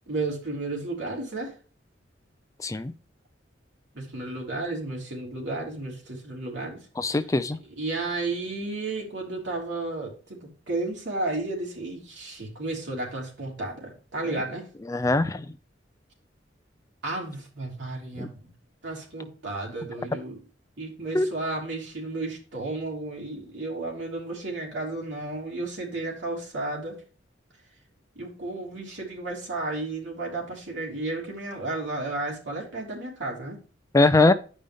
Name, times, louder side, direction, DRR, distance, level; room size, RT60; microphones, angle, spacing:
voice 1, 0.1-1.5 3.9-7.2 7.7-14.7 17.0-18.5 18.8-20.4 20.8-26.9 28.1-33.6, right 2 dB, 75° right, -2 dB, 3.3 m, -33 dB
voice 2, 2.6-2.9 7.0-7.6 14.9-15.5 18.2-18.3 21.1-21.3 33.9-34.3, left 2 dB, 15° left, 12 dB, 0.4 m, -21 dB
10.0 x 5.3 x 3.5 m, 0.37 s
head